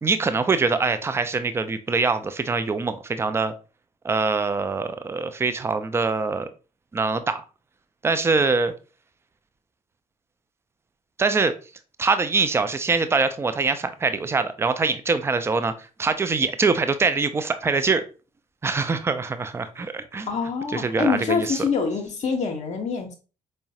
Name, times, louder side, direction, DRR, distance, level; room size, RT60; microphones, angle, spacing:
voice 1, 0.0-3.5 4.0-6.5 6.9-7.4 8.0-8.7 11.2-11.5 12.0-15.7 16.0-18.0 18.6-20.3 20.7-21.6, right 4 dB, 15° right, 11 dB, 0.4 m, -23 dB
voice 2, 20.3-23.1, left 5 dB, 40° left, 4 dB, 0.7 m, -25 dB
4.5 x 2.1 x 2.6 m, 0.34 s
figure-of-eight pair, 45°, 18 cm